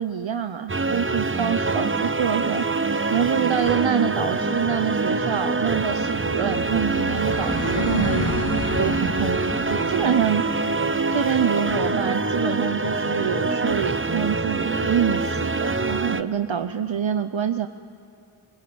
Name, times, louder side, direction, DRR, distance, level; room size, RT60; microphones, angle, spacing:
voice 1, 0.0-8.3 8.8-10.7 11.1-17.7, right 8 dB, 65° right, 8 dB, 0.9 m, -26 dB
sound 1, 0.7-16.2, right 3 dB, 25° right, 0.8 m, -25 dB
sound 2, 5.0-14.5, left 2 dB, 60° left, 2.9 m, -34 dB
24.5 x 24.0 x 8.8 m, 2.7 s
wide cardioid pair, 70°, 50 cm